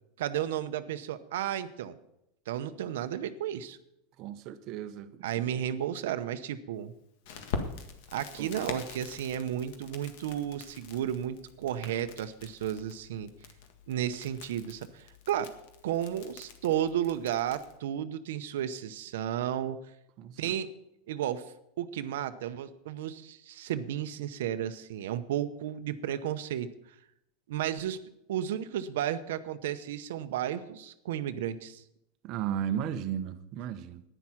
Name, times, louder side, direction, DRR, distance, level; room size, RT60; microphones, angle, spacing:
voice 1, 0.2-2.0 2.5-3.8 5.2-6.9 8.1-13.3 13.9-15.5 15.8-19.8 20.4-20.7 21.1-21.4 21.8-26.7 27.5-28.0 28.3-31.8, right 10 dB, 80° right, 0.8 m, -33 dB
voice 2, 4.2-5.1 8.4-8.5 20.2-20.5 32.2-34.0, right 9 dB, 40° right, 0.8 m, -34 dB
Crackle, 7.2-17.8, left 5 dB, 60° left, 1.7 m, -44 dB
10.5 x 10.0 x 5.8 m
supercardioid pair, 155°, 0 cm